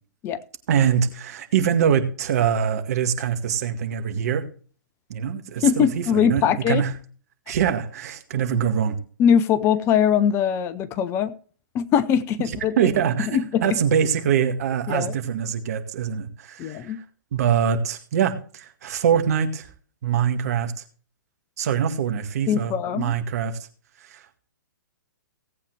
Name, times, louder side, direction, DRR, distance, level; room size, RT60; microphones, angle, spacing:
voice 1, 0.7-4.4 5.1-6.9 7.5-9.0 12.8-16.9 17.3-19.7 20.0-20.7 21.6-23.6 24.1-24.4, right 8 dB, 50° right, 1.9 m, -23 dB
voice 2, 5.6-6.8 9.2-11.3 11.7-12.9 13.3-13.8 14.9-15.1 16.6-17.0 22.5-23.1, left 8 dB, 25° left, 0.8 m, -21 dB
17.5 x 8.3 x 3.4 m
figure-of-eight pair, 120°, 11 cm